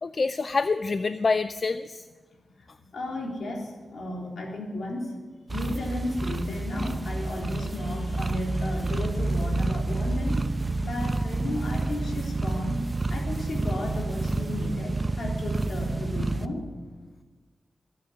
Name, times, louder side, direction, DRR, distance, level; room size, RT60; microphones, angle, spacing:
voice 1, 0.0-2.0, left 4 dB, 45° left, 12 dB, 0.4 m, -26 dB
voice 2, 2.6-5.2 5.5-10.5 10.8-12.8 13.1-16.7, left 1 dB, 80° left, -1 dB, 3.7 m, -34 dB
sound 1, 5.5-16.5, right 2 dB, 25° right, 0.7 m, -29 dB
22.5 x 8.6 x 7.5 m, 1.4 s
wide cardioid pair, 105°, 0 cm